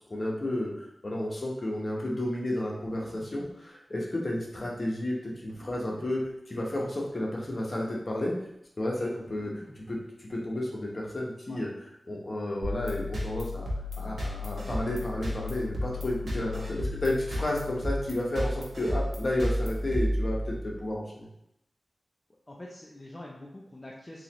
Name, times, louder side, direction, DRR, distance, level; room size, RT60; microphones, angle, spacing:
voice 1, 0.1-8.3 8.8-11.7 12.1-13.7 14.0-21.3, left 1 dB, 45° left, -3 dB, 1.0 m, -32 dB
sound 1, 2.8-3.5 4.4-4.5 5.5-6.3 7.1-7.2 7.5-8.0 9.2-10.0 10.3-10.8, right 1 dB, 45° right, 0.8 m, -50 dB
sound 2, 12.6-20.8, left 1 dB, 75° right, 1.0 m, -33 dB
voice 2, 22.5-24.2, left 1 dB, 25° left, -3 dB, 0.5 m, -45 dB
3.8 x 2.9 x 3.0 m, 0.81 s
wide cardioid pair, 75°, 0 cm